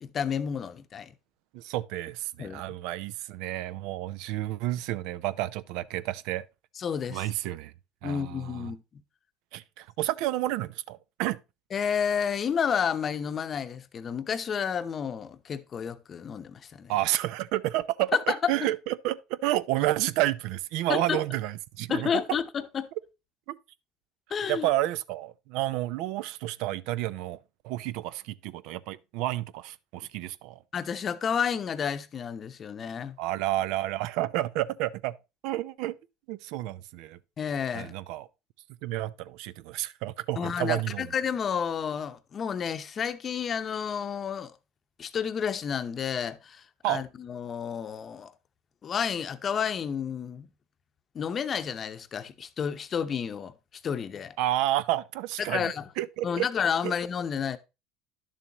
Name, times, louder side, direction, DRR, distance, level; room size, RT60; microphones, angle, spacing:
voice 1, 0.0-1.1 2.4-2.6 6.8-7.3 8.0-9.0 11.7-16.9 18.1-18.5 20.9-21.2 21.9-22.9 24.3-24.7 30.7-33.2 37.4-37.9 40.4-44.5 45.0-48.3 48.8-50.5 51.1-53.5 53.8-54.4 55.4-55.9 56.2-57.6, left 7 dB, 35° left, 0.7 m, -30 dB
voice 2, 1.5-6.4 7.1-7.7 8.0-8.7 9.5-11.4 16.9-22.2 23.5-23.6 24.5-27.4 27.6-30.6 33.2-35.1 35.4-36.0 36.3-37.2 37.7-38.3 38.8-41.1 46.8-47.0 54.4-56.5 56.8-56.9, right 15 dB, 70° right, 0.4 m, -30 dB
11.0 x 6.9 x 2.9 m
supercardioid pair, 105°, 0 cm